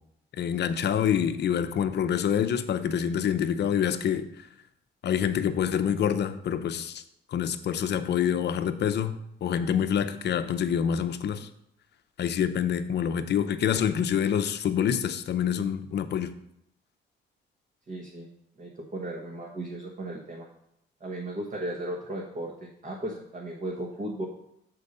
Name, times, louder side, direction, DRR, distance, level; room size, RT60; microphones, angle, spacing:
voice 1, 0.4-4.3 5.0-7.0 7.3-9.2 9.4-11.5 12.2-16.3, left 8 dB, 60° left, 9 dB, 0.6 m, -26 dB
voice 2, 17.9-18.3 18.6-20.5 21.0-24.3, right 1 dB, 40° right, -1 dB, 1.2 m, -36 dB
6.5 x 4.5 x 5.3 m, 0.77 s
cardioid pair, 90°, 20 cm